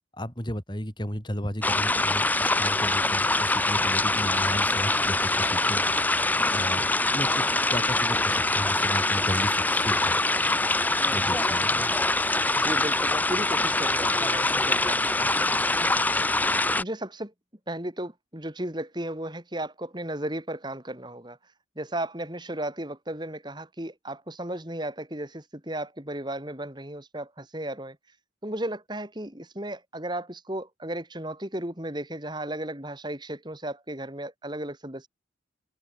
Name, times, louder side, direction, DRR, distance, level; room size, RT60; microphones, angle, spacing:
voice 1, 0.1-5.8 6.5-6.9 7.1-10.2 11.1-11.9, equal, 25° left, 7.2 m, -34 dB
sound 1, 1.6-16.8, left 2 dB, 10° left, 1.1 m, -24 dB
voice 2, 11.1-11.6 12.5-16.1 16.8-17.3 17.7-21.4 21.8-28.0 28.4-35.1, right 1 dB, 25° right, 3.8 m, -35 dB
head